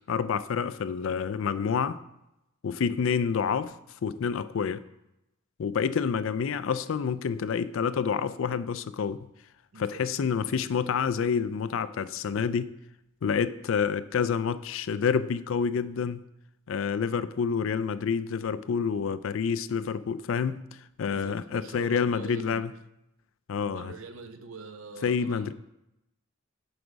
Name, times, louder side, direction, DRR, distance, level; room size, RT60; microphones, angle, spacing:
voice 1, 0.1-2.0 2.6-3.7 4.0-4.8 5.6-9.2 9.8-12.7 13.2-16.2 16.7-20.6 21.0-22.7 23.5-23.9 25.0-25.5, left 6 dB, 65° left, 15 dB, 0.4 m, -28 dB
voice 2, 9.7-10.1 21.1-22.7 23.6-25.5, right 4 dB, 75° right, 8 dB, 0.7 m, -44 dB
8.0 x 5.0 x 5.1 m, 0.89 s
head